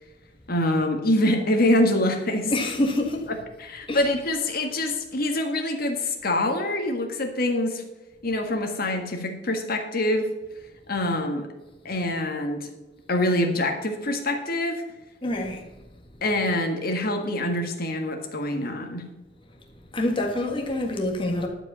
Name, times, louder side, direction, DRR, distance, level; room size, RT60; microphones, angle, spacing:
voice 1, 0.5-2.5 3.6-7.8 8.2-10.3 10.9-11.5 11.8-12.7 13.1-14.8 16.2-19.0, left 1 dB, 55° left, 1.6 m, -25 dB
voice 2, 2.5-3.3 3.9-4.0 15.2-15.7 19.9-21.5, left 1 dB, 30° left, 1.7 m, -26 dB
11.5 x 5.1 x 6.8 m
head